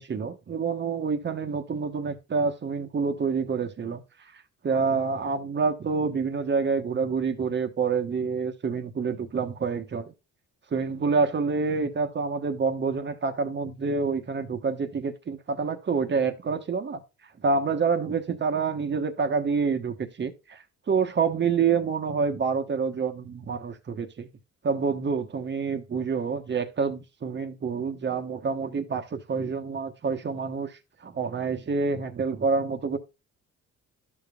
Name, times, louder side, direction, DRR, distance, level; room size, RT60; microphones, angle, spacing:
voice 1, 0.0-4.0 4.6-10.1 10.7-17.0 17.4-20.6 20.9-24.3 24.6-33.0, right 5 dB, 35° right, 1.0 m, -27 dB
12.0 x 5.2 x 2.3 m
cardioid pair, 90°, 30 cm